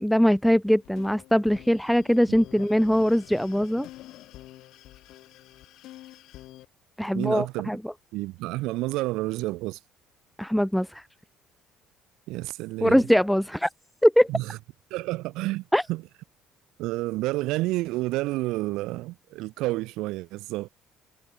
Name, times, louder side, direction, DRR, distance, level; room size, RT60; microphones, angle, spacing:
voice 1, 0.0-3.9 7.0-7.8 10.4-11.0 12.8-13.7 14.0-14.3 15.7-15.8, equal, ahead, 0.3 m, -22 dB
sound 1, 0.6-6.7, left 15 dB, 70° left, 2.4 m, -47 dB
voice 2, 7.1-7.7 8.1-9.8 12.3-13.0 14.3-14.6 14.9-15.6 15.9-16.0 16.8-20.7, right 19 dB, 80° right, 0.7 m, -29 dB
supercardioid pair, 85°, 0 cm